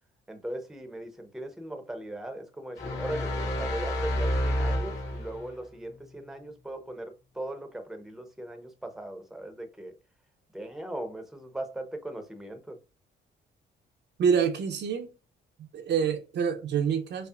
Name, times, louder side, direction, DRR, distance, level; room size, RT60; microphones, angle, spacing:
voice 1, 0.3-9.9 10.5-12.8, right 1 dB, ahead, 0.7 m, -39 dB
sound 1, 2.8-5.5, left 1 dB, 65° left, 2.0 m, -29 dB
voice 2, 14.2-15.1 15.6-17.3, right 7 dB, 60° right, 0.6 m, -27 dB
5.3 x 2.1 x 2.4 m
cardioid pair, 90°, 20 cm